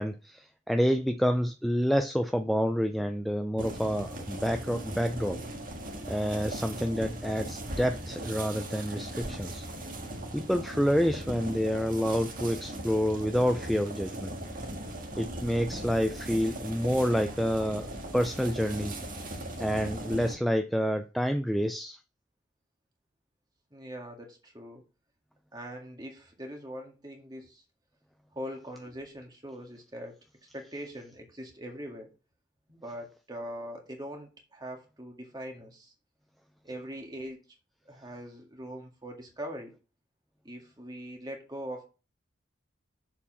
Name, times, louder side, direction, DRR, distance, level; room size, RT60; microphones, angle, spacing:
voice 1, 0.0-5.4 6.1-9.7 10.3-14.3 15.2-17.9 18.1-19.0 19.6-22.0, equal, ahead, 0.3 m, -28 dB
sound 1, 3.6-20.3, right 1 dB, 45° right, 1.8 m, -39 dB
voice 2, 23.7-24.8 25.5-27.6 28.3-30.2 30.5-32.1 32.7-35.9 36.6-37.4 37.9-39.7 40.4-41.8, equal, 20° right, 1.9 m, -42 dB
7.0 x 4.7 x 5.6 m
head